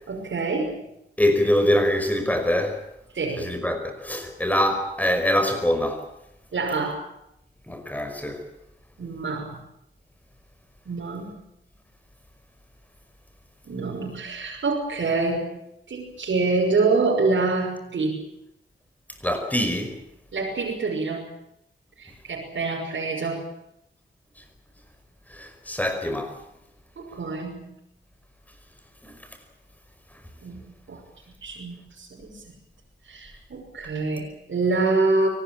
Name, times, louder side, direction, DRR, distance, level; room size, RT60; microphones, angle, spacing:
voice 1, 0.1-0.8 3.1-3.5 6.5-7.0 9.0-9.6 10.9-11.4 13.6-15.6 15.9-18.2 20.3-21.4 22.0-23.5 27.0-27.8 30.4-32.4 33.1-35.3, right 3 dB, 75° right, 6.0 m, -26 dB
voice 2, 1.2-2.8 3.4-6.1 7.7-8.4 19.2-20.0 25.3-26.4 29.0-29.2, left 1 dB, 10° left, 5.3 m, -24 dB
24.0 x 19.5 x 8.8 m
wide cardioid pair, 140°, 20 cm